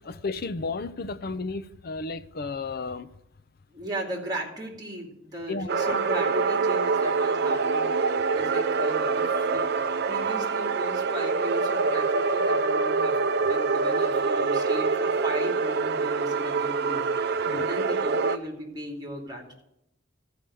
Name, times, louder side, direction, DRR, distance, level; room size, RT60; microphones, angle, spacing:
voice 1, 0.0-3.1 5.5-6.1 17.5-17.7, left 3 dB, 50° left, 0.6 m, -33 dB
voice 2, 3.7-19.6, equal, 20° right, 2.5 m, -37 dB
sound 1, 5.7-18.4, right 4 dB, 55° right, 0.5 m, -25 dB
13.5 x 5.0 x 9.1 m
head